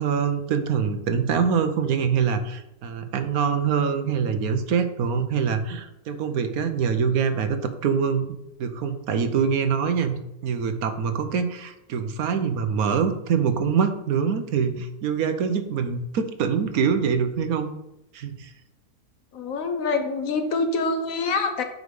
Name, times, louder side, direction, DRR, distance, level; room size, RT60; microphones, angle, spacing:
voice 1, 0.0-10.1 10.4-17.7 18.1-18.5, right 6 dB, 70° right, 9 dB, 1.2 m, -24 dB
voice 2, 19.3-21.6, left 3 dB, 65° left, 6 dB, 1.2 m, -25 dB
7.9 x 4.9 x 5.3 m, 0.89 s
omnidirectional pair, 1.6 m